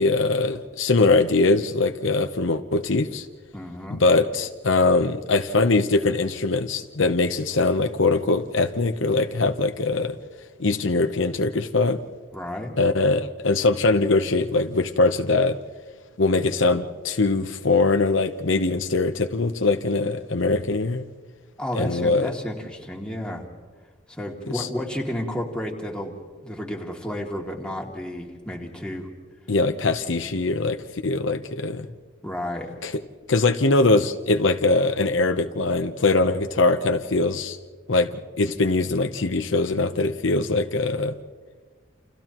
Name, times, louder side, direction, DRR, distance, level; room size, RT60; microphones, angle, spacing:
voice 1, 0.0-3.3 3.9-10.1 10.6-12.0 12.8-15.6 16.2-21.1 21.7-22.3 24.5-24.7 29.5-31.9 32.8-33.0 33.3-37.6 37.9-41.2, left 3 dB, 65° left, 7 dB, 0.9 m, -22 dB
voice 2, 3.5-4.0 12.3-12.8 21.6-23.5 24.1-29.1 32.2-32.8, left 1 dB, 5° left, -1 dB, 2.5 m, -32 dB
29.5 x 29.0 x 3.0 m, 1.5 s
head